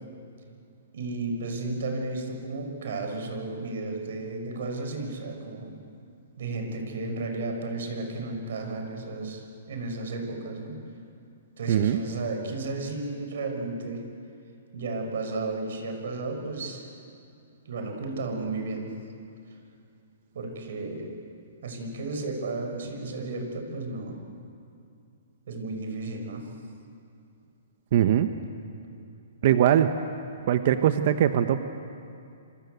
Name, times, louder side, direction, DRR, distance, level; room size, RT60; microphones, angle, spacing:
voice 1, 0.9-5.8 6.4-10.7 11.6-14.0 14.7-16.9 17.6-18.9 20.3-21.1 21.6-24.2 25.5-26.5, right 3 dB, 65° right, 4 dB, 6.5 m, -33 dB
voice 2, 11.7-12.0 27.9-28.3 29.4-29.9 30.5-31.6, right 10 dB, 50° right, 9 dB, 1.2 m, -21 dB
27.0 x 26.0 x 8.3 m, 2.5 s
hypercardioid pair, 155°, 0 cm